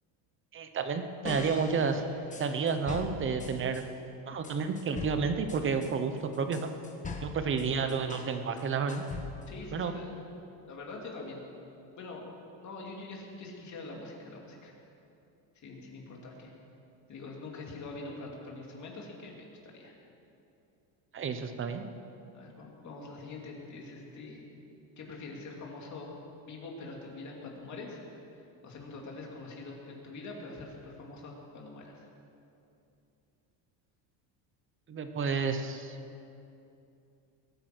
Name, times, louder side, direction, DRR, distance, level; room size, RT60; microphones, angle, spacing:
voice 1, 0.5-2.0 2.4-3.8 4.3-6.7 7.2-9.0 9.7-9.9 21.1-21.9 34.9-35.9, right 5 dB, 25° right, 8 dB, 0.9 m, -31 dB
sound 1, 1.2-3.9 4.4-8.3 8.6-9.6, left 4 dB, 15° left, 1.3 m, -42 dB
voice 2, 9.5-10.1 10.7-11.4 11.9-14.7 15.6-16.5 17.1-19.9 22.3-24.5 25.0-26.1 26.5-28.0 28.3-32.1, left 3 dB, 40° left, -1 dB, 2.9 m, -44 dB
21.5 x 9.1 x 6.2 m, 2.7 s
cardioid pair, 155°, 45 cm